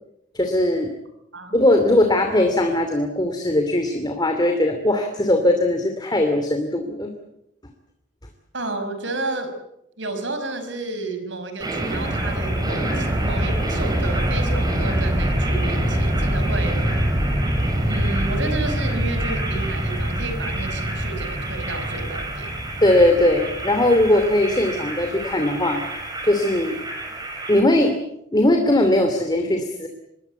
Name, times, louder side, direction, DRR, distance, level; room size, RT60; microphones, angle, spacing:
voice 1, 0.3-0.9 1.5-7.1 22.8-25.8 26.2-26.8 27.5-28.0 28.3-29.9, left 1 dB, 20° left, 5 dB, 2.6 m, -19 dB
voice 2, 8.5-9.5 10.0-17.1 17.9-22.6, right 2 dB, 80° right, 8 dB, 5.5 m, -31 dB
sound 1, 11.6-27.6, right 1 dB, 20° right, 5.5 m, -25 dB
26.0 x 21.0 x 8.3 m, 0.80 s
head